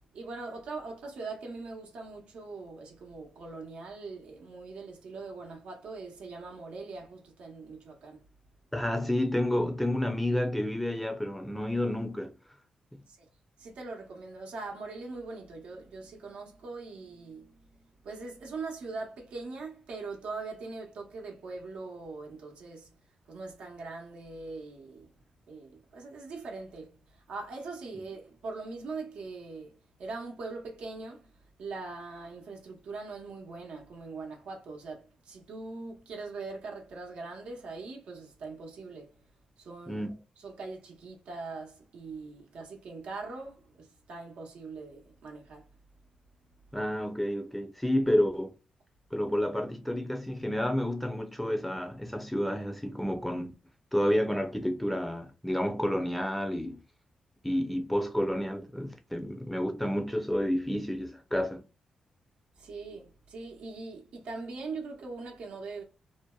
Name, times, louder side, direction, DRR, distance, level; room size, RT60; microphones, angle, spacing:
voice 1, 0.1-8.2 13.1-13.3 13.6-22.9 23.3-25.1 25.5-31.3 31.6-39.1 39.6-40.1 40.4-45.7 62.6-65.8, right 3 dB, 80° right, 0.8 m, -42 dB
voice 2, 8.7-12.3 39.9-40.2 46.7-48.5 49.1-53.5 53.9-56.8 57.4-61.6, left 1 dB, 5° left, 0.5 m, -30 dB
2.6 x 2.1 x 2.2 m
cardioid pair, 75°, 2 cm